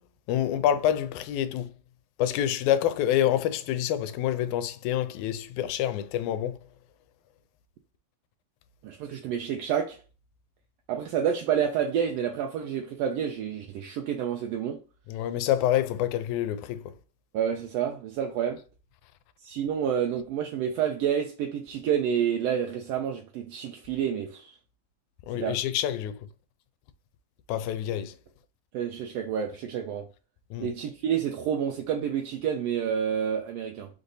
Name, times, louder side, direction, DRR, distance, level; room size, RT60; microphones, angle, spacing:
voice 1, 0.3-1.7 2.2-6.6 15.1-16.8 25.3-26.2 27.5-28.1 30.5-30.7, left 11 dB, 85° left, 2.0 m, -27 dB
voice 2, 8.8-10.0 10.9-14.8 17.3-18.6 19.4-24.6 25.3-25.6 28.7-30.1 30.6-33.9, right 8 dB, 80° right, 1.4 m, -29 dB
5.1 x 2.7 x 3.9 m
omnidirectional pair, 3.3 m